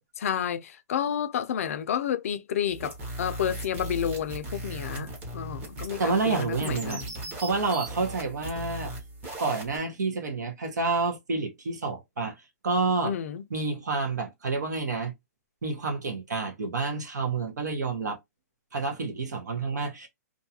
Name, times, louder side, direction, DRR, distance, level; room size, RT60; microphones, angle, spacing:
voice 1, 0.2-7.3 13.0-13.4, left 9 dB, 55° left, 0.4 m, -31 dB
sound 1, 2.7-9.8, right 1 dB, 20° right, 0.8 m, -38 dB
voice 2, 6.0-7.0 7.4-8.9 9.4-12.3 12.6-13.1 13.5-15.1 15.6-18.2 18.7-20.1, right 4 dB, 90° right, 1.0 m, -29 dB
2.6 x 2.3 x 2.8 m
hypercardioid pair, 160°, 9 cm